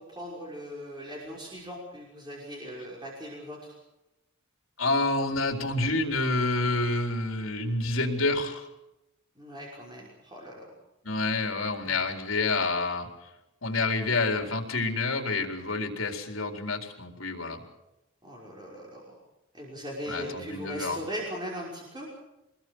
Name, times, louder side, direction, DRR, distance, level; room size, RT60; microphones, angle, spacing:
voice 1, 0.1-3.7 9.4-10.6 11.8-12.0 18.2-19.2 19.5-22.1, equal, 20° right, -3 dB, 5.7 m, -39 dB
voice 2, 4.8-8.7 11.0-13.1 13.6-17.6 20.1-21.0, left 3 dB, 75° left, 4 dB, 4.2 m, -28 dB
26.0 x 20.5 x 6.4 m, 0.93 s
head